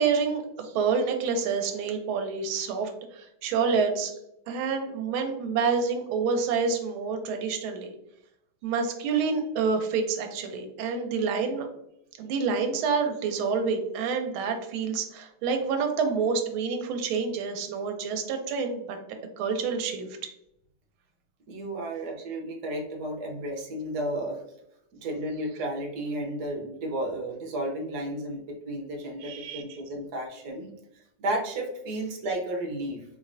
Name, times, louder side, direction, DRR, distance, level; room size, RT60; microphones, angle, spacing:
voice 1, 0.0-4.2 4.5-7.9 8.6-11.7 12.2-19.0 19.4-20.1 29.2-29.6, right 5 dB, 80° right, 5 dB, 1.4 m, -28 dB
voice 2, 21.5-24.4 24.9-30.7 31.2-33.0, right 1 dB, 60° right, 0 dB, 1.1 m, -33 dB
4.1 x 3.1 x 2.5 m, 0.81 s
omnidirectional pair, 2.3 m